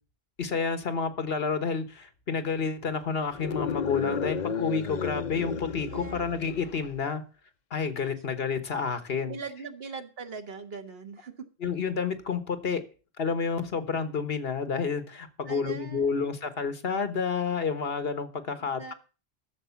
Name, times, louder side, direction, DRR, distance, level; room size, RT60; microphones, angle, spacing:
voice 1, 0.4-7.2 7.7-9.4 11.6-12.8 13.2-18.9, left 5 dB, 70° left, 11 dB, 1.5 m, -30 dB
sound 1, 3.3-6.9, left 6 dB, 50° left, 0.8 m, -33 dB
voice 2, 5.9-6.2 9.2-11.5 15.5-16.2 18.8-18.9, right 5 dB, 70° right, 7 dB, 1.6 m, -40 dB
11.5 x 7.2 x 7.0 m, 0.36 s
omnidirectional pair, 1.1 m